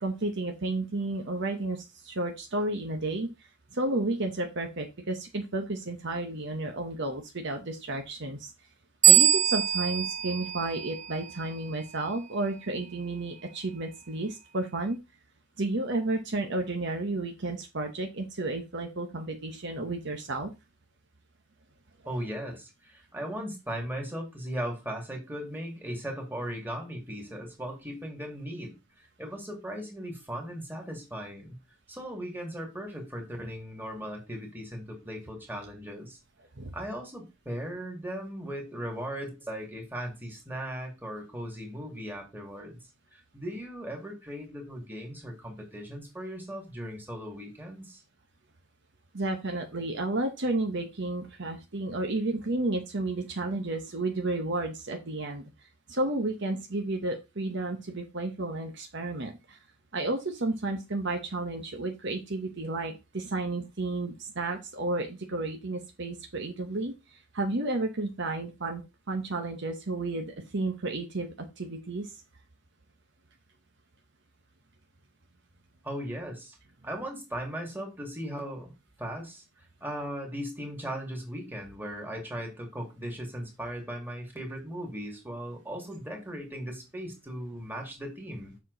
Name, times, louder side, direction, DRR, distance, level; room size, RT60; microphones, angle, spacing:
voice 1, 0.0-3.3 3.7-8.5 9.1-15.0 15.6-20.5 36.6-36.7 49.1-55.4 55.9-59.6 59.9-68.8 69.1-72.1, right 2 dB, 55° right, 4 dB, 1.1 m, -32 dB
sound 1, 9.0-11.5, right 10 dB, 35° right, 0.3 m, -23 dB
voice 2, 22.1-31.6 31.9-36.2 36.7-42.8 43.1-48.0 75.8-76.6 76.8-78.7 79.0-88.5, equal, 10° right, 1 dB, 2.4 m, -38 dB
7.3 x 6.1 x 4.0 m, 0.25 s
head